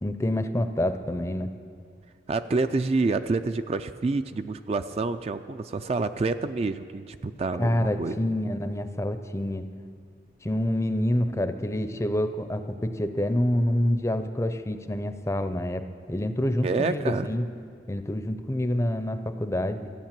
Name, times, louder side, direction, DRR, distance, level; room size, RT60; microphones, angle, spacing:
voice 1, 0.0-1.5 7.6-9.7 10.4-17.5 17.9-19.9, left 1 dB, 15° left, 10 dB, 0.5 m, -27 dB
voice 2, 2.3-8.2 16.6-17.3, right 3 dB, 35° right, 10 dB, 0.3 m, -28 dB
13.5 x 9.2 x 7.4 m, 2.1 s
head